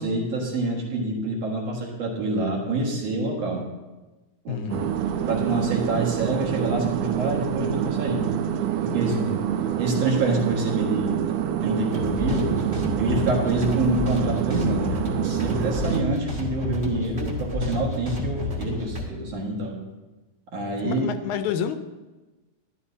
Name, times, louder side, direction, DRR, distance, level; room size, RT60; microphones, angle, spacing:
voice 1, 0.0-3.7 4.4-4.6 5.1-8.3 8.8-9.2 9.8-11.2 11.6-12.6 13.0-15.0 15.2-19.8 20.5-21.0, right 2 dB, 60° right, -2 dB, 2.7 m, -26 dB
voice 2, 4.5-5.0 9.1-9.4 20.8-21.8, left 8 dB, 80° left, 9 dB, 2.0 m, -29 dB
sound 1, 4.7-16.0, right 10 dB, 75° right, 1.6 m, -26 dB
sound 2, 11.9-19.0, left 3 dB, 30° right, 1.4 m, -30 dB
12.5 x 12.0 x 2.7 m, 1.1 s
omnidirectional pair, 3.5 m